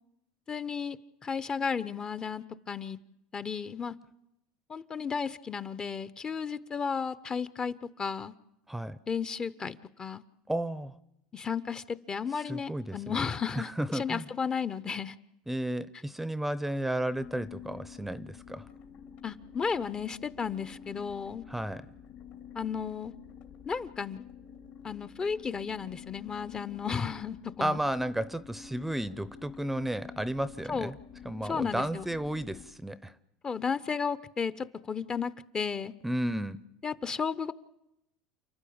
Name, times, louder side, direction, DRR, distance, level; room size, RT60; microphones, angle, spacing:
voice 1, 0.5-1.0 1.2-3.0 3.3-4.0 4.7-8.3 9.1-10.2 11.3-15.1 19.2-21.4 22.5-23.1 23.6-24.2 24.8-27.8 30.7-30.9 31.4-32.1 33.4-35.9 36.8-37.5, left 6 dB, 25° left, 14 dB, 0.8 m, -33 dB
voice 2, 8.7-9.0 10.5-11.0 12.3-13.2 13.5-14.3 15.5-18.7 21.5-21.9 27.6-31.0 31.2-33.2 36.0-36.6, right 1 dB, 5° right, 16 dB, 0.7 m, -33 dB
sound 1, 17.1-32.7, left 8 dB, 60° left, 2.5 m, -49 dB
29.5 x 11.5 x 8.7 m, 0.85 s
supercardioid pair, 105°, 3 cm